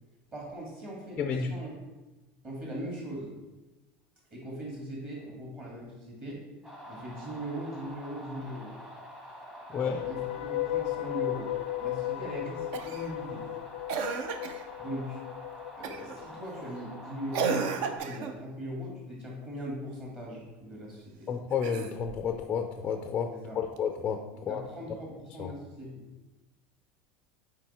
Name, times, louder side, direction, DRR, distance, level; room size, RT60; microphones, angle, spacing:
voice 1, 0.3-1.7 2.4-3.3 4.3-6.4 6.9-8.7 9.7-11.5 11.8-13.5 14.8-15.2 15.8-21.3 23.3-23.6 24.3-26.1, equal, 25° right, -3 dB, 1.9 m, -40 dB
voice 2, 1.2-1.6 9.7-10.0 21.3-24.6 25.4-25.5, left 6 dB, 20° left, 5 dB, 0.4 m, -31 dB
sound 1, 6.6-18.0, equal, 10° right, 1.2 m, -47 dB
sound 2, 9.9-17.0, left 15 dB, 85° left, 0.4 m, -36 dB
Cough, 12.7-13.1 13.9-14.7 15.8-16.2 17.3-18.4 21.5-22.3 23.8-23.9, right 6 dB, 55° right, 0.6 m, -33 dB
7.7 x 4.8 x 4.3 m, 1.1 s
cardioid pair, 170°, 6 cm